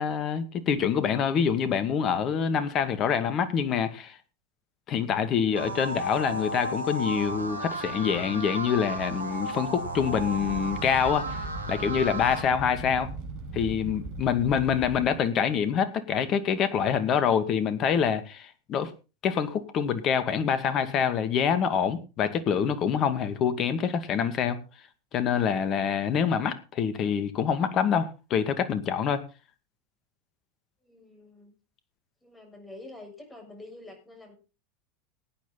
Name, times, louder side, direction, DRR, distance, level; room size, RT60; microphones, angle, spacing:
voice 1, 0.0-4.2 4.9-11.4 11.7-13.1 13.5-18.9 19.2-24.6 25.1-29.2, left 7 dB, 40° left, 12 dB, 2.2 m, -26 dB
sound 1, 5.6-12.4, right 1 dB, 90° right, 3.0 m, -34 dB
Fire, 9.9-15.2, right 3 dB, 55° right, 6.9 m, -39 dB
voice 2, 30.8-31.5 32.2-34.4, left 2 dB, 10° left, 4 dB, 7.3 m, -47 dB
18.0 x 9.6 x 4.1 m, 0.32 s
hypercardioid pair, 85°, 0 cm